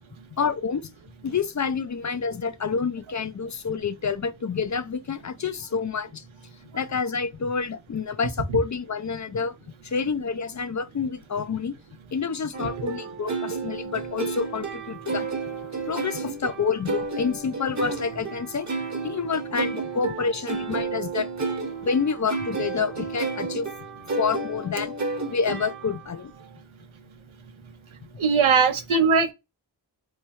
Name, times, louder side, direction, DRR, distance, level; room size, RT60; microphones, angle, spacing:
voice 1, 0.3-0.8 1.2-6.2 6.7-9.5 9.8-11.8 12.1-15.3 15.9-18.7 19.0-21.3 21.8-23.7 24.2-24.9 25.3-26.3, left 5 dB, 40° left, 0.4 m, -28 dB
sound 1, 12.5-26.1, right 4 dB, 35° right, 1.0 m, -31 dB
voice 2, 28.2-29.3, right 5 dB, 85° right, 0.8 m, -20 dB
3.2 x 2.3 x 4.0 m
cardioid pair, 45°, 47 cm